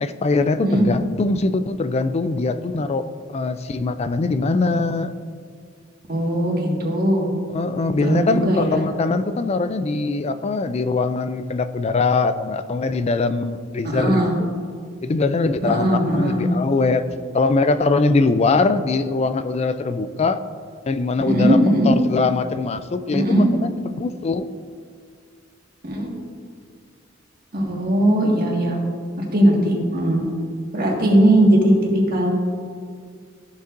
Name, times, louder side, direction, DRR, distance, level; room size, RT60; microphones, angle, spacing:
voice 1, 0.0-5.1 7.5-14.5 15.0-17.0 17.3-20.4 20.9-24.4, left 3 dB, 30° left, 12 dB, 0.3 m, -22 dB
voice 2, 6.1-7.3 8.0-8.8 13.8-14.4 15.6-16.4 21.2-21.9 23.1-23.5 25.8-26.1 27.5-28.8 29.2-30.2 30.7-31.7 32.1-32.3, right 1 dB, 50° right, -2 dB, 1.8 m, -19 dB
14.0 x 6.9 x 2.6 m, 2.1 s
head